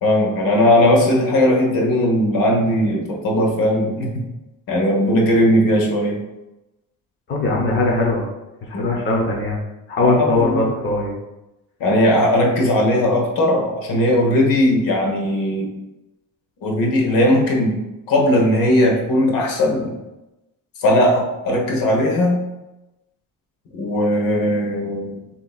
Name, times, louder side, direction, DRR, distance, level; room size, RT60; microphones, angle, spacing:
voice 1, 0.0-4.2 4.7-6.2 8.7-8.9 10.0-10.7 11.8-15.7 16.6-17.8 18.1-20.0 20.8-22.4 23.8-25.2, left 1 dB, 70° left, 1 dB, 1.2 m, -18 dB
voice 2, 7.3-8.2 8.7-9.6 9.9-11.1, left 2 dB, 30° left, -2 dB, 0.8 m, -20 dB
6.7 x 3.0 x 2.4 m, 0.99 s
cardioid pair, 165°, 36 cm